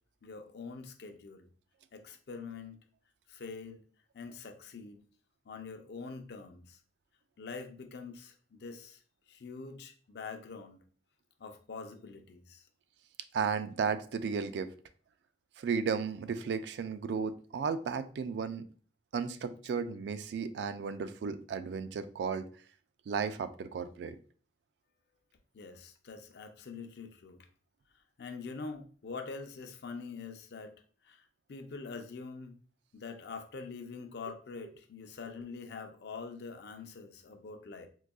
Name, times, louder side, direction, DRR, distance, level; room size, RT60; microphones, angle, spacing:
voice 1, 0.2-1.5 1.9-2.8 3.3-3.8 4.1-5.0 5.5-6.8 7.4-9.0 9.3-10.8 11.4-12.6 25.5-27.5 28.2-30.7 31.0-31.2 31.5-32.5 32.9-37.9, left 4 dB, 65° left, 6 dB, 0.5 m, -44 dB
voice 2, 13.3-14.7 15.6-18.7 19.1-22.4 23.1-24.2, right 6 dB, 70° right, 12 dB, 0.3 m, -34 dB
3.9 x 2.6 x 2.3 m, 0.42 s
head